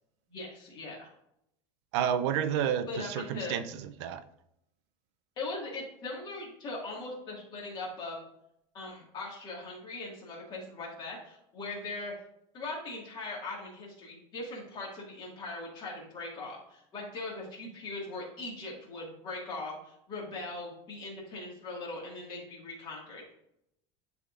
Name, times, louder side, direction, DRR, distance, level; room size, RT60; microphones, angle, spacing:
voice 1, 0.3-1.1 2.9-3.6 5.4-8.2 8.7-12.1 12.5-23.3, left 2 dB, 30° left, -3 dB, 1.9 m, -40 dB
voice 2, 1.9-4.2, right 9 dB, 70° right, 11 dB, 0.5 m, -30 dB
10.5 x 3.5 x 2.5 m, 0.78 s
cardioid pair, 175°, 15 cm